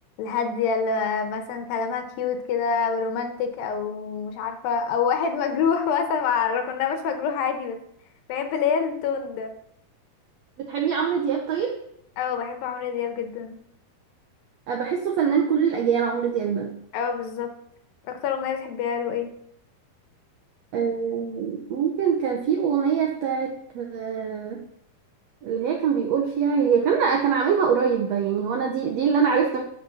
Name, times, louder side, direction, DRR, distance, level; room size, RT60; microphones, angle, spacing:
voice 1, 0.2-7.8 8.3-9.5 12.2-13.6 16.9-17.5 18.1-19.3, left 6 dB, 75° left, 6 dB, 2.7 m, -26 dB
voice 2, 10.7-11.7 14.7-16.7 20.7-24.6 25.4-29.6, right 7 dB, 75° right, 0 dB, 1.5 m, -23 dB
10.0 x 4.4 x 6.4 m, 0.73 s
omnidirectional pair, 4.2 m